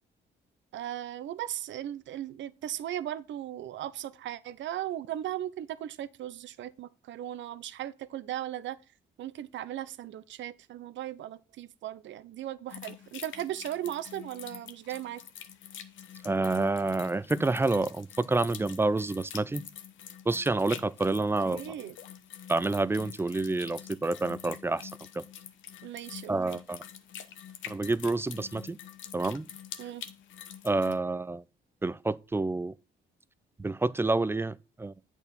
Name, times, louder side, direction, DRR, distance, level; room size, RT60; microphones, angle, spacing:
voice 1, 0.7-8.8 9.2-15.2 21.2-22.0 25.8-26.6 29.8-30.0, right 12 dB, 70° right, 0.6 m, -37 dB
sound 1, 12.7-31.0, left 9 dB, 75° left, 0.9 m, -46 dB
voice 2, 16.2-19.6 20.3-21.6 22.5-25.2 26.3-26.8 27.7-28.8 29.1-29.5 30.6-31.4 31.8-32.7 33.6-34.9, right 2 dB, 10° right, 0.3 m, -28 dB
8.2 x 4.5 x 5.2 m
cardioid pair, 90°, 20 cm